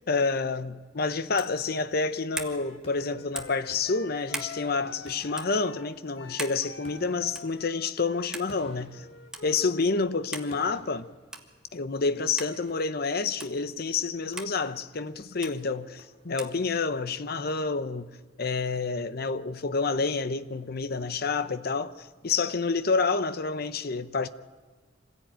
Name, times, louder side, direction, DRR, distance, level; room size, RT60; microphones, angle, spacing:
voice 1, 0.1-9.0 9.4-11.1 11.7-18.1 18.4-24.3, left 4 dB, 55° left, 0.8 m, -28 dB
sound 1, 1.3-1.6 2.3-2.6 3.3-3.6 4.3-4.5 5.3-5.5 6.4-6.6 7.3-7.6 8.3-8.5 9.3-9.4 10.3-10.5 11.3-11.5 12.4-12.5 13.4-13.5 14.4-14.5 15.4-15.5 16.4-16.6, right 1 dB, 5° right, 1.7 m, -37 dB
Wind instrument woodwind instrument, 2.4-9.9, left 4 dB, 80° left, 1.2 m, -47 dB
sound 2, 2.8-4.6 5.1-6.2 6.8-9.9 10.5-11.9 12.7-13.3 14.3-15.0 15.9-16.6 17.5-18.1, left 1 dB, 35° left, 3.0 m, -55 dB
26.0 x 16.0 x 9.0 m
head